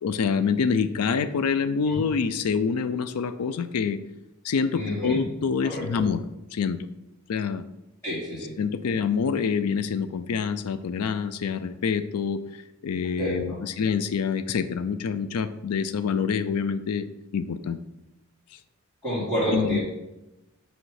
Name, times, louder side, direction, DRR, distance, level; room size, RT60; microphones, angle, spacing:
voice 1, 0.0-4.0 4.4-6.2 6.5-6.8 7.3-7.6 8.6-17.1 17.3-17.8 19.5-19.8, left 6 dB, 90° left, 12 dB, 0.4 m, -26 dB
voice 2, 4.7-5.2 5.6-6.0 8.0-8.5 13.2-13.6 19.0-19.8, equal, 10° left, -12 dB, 2.4 m, -29 dB
7.8 x 3.2 x 4.8 m, 0.94 s
head